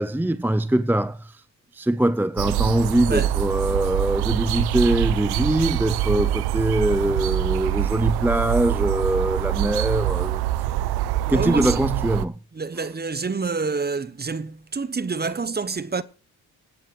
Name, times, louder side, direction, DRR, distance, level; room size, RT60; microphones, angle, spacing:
voice 1, 0.0-1.4 1.7-10.4 11.3-12.4, right 1 dB, 5° right, 0.6 m, -23 dB
sound 1, 2.4-12.2, right 13 dB, 85° right, 0.7 m, -25 dB
voice 2, 3.0-3.3 11.2-11.8 12.5-16.0, right 4 dB, 25° right, 1.0 m, -27 dB
26.0 x 9.0 x 3.3 m
supercardioid pair, 55°, 37 cm